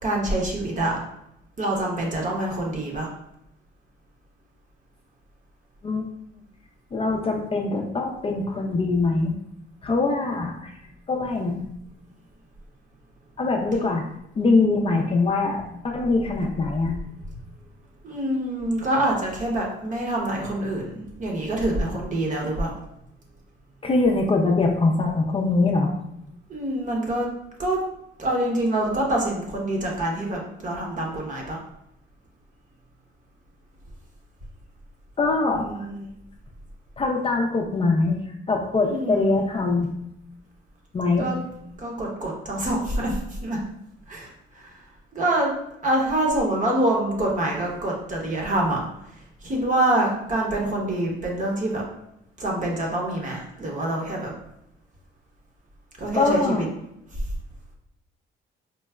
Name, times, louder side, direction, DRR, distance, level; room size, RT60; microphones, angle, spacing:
voice 1, 0.0-1.0 1.6-3.1 18.0-22.7 26.5-27.3 27.6-27.8 28.2-31.6 35.5-36.1 38.8-39.4 41.2-41.4 41.8-43.6 44.1-44.8 45.1-45.5 45.8-48.8 49.4-51.9 52.4-54.3 56.0-56.7, right 1 dB, 40° right, -1 dB, 0.9 m, -26 dB
voice 2, 6.9-9.4 9.8-10.7 11.1-11.7 13.4-14.0 14.4-17.0 23.8-25.9 35.2-35.7 37.0-39.9 40.9-41.3 56.1-56.7, left 3 dB, 30° left, 1 dB, 0.4 m, -23 dB
4.5 x 2.0 x 2.3 m, 0.81 s
cardioid pair, 90°, 20 cm